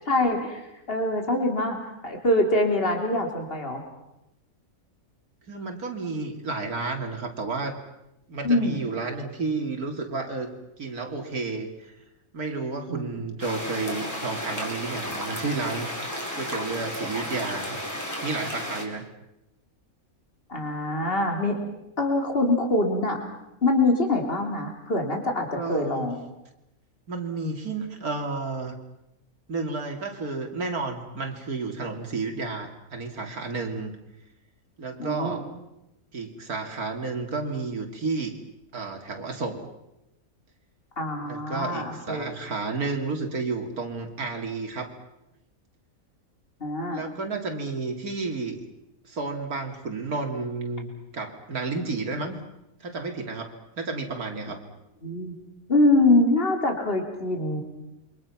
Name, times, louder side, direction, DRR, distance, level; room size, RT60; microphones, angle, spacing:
voice 1, 0.1-0.6 0.9-1.8 2.0-3.8 8.4-8.8 12.9-13.1 20.5-21.6 22.0-23.2 23.6-26.2 35.0-35.4 41.0-42.3 46.6-47.0 55.0-55.3 55.7-57.6, left 2 dB, 40° left, 3 dB, 3.7 m, -24 dB
voice 2, 5.5-7.8 8.3-10.5 10.8-11.9 12.3-16.0 16.3-17.8 18.2-19.0 25.5-26.1 27.1-28.7 29.5-33.9 34.8-35.4 36.1-38.3 38.7-39.6 41.2-44.9 46.9-48.6 49.1-50.9 51.1-52.4 52.8-54.6, right 3 dB, 80° right, 4 dB, 3.1 m, -31 dB
sound 1, 13.4-18.8, equal, 10° left, 4.1 m, -33 dB
28.5 x 24.5 x 6.0 m, 0.89 s
omnidirectional pair, 1.5 m